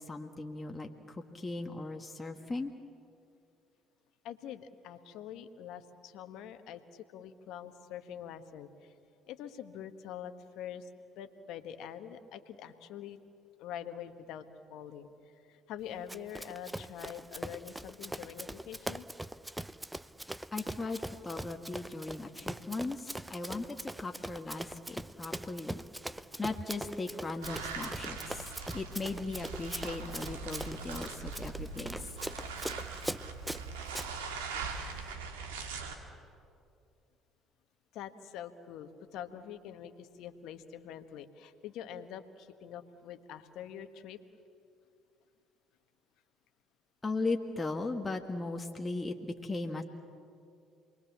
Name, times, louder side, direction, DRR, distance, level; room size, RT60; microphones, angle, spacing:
voice 1, 0.0-2.7 20.5-25.8 26.4-32.1 47.0-49.8, left 3 dB, 20° left, 2 dB, 1.7 m, -38 dB
voice 2, 4.2-8.9 9.3-10.9 11.1-13.2 13.6-14.4 14.7-15.1 15.5-19.1 37.9-44.2, left 9 dB, 70° left, 9 dB, 1.4 m, -45 dB
Run, 16.1-34.1, right 1 dB, 10° right, 0.7 m, -42 dB
sound 1, 27.4-36.0, right 5 dB, 85° right, 2.1 m, -41 dB
28.0 x 21.5 x 7.3 m, 2.5 s
hypercardioid pair, 60°, 0 cm